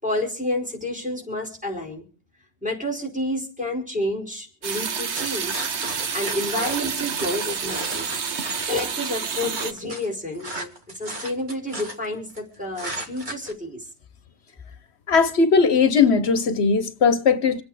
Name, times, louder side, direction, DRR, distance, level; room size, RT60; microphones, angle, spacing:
voice 1, 0.0-2.0 2.6-5.7 6.1-8.1 8.7-13.9, left 1 dB, 5° right, 4.8 m, -29 dB
sound 1, 4.6-9.7, right 6 dB, 80° right, 1.3 m, -29 dB
sound 2, 5.1-8.7 9.1-12.4 12.8-13.5, right 1 dB, 45° right, 2.0 m, -35 dB
voice 2, 15.1-17.6, left 5 dB, 70° left, 1.2 m, -18 dB
26.5 x 8.9 x 4.9 m
omnidirectional pair, 1.1 m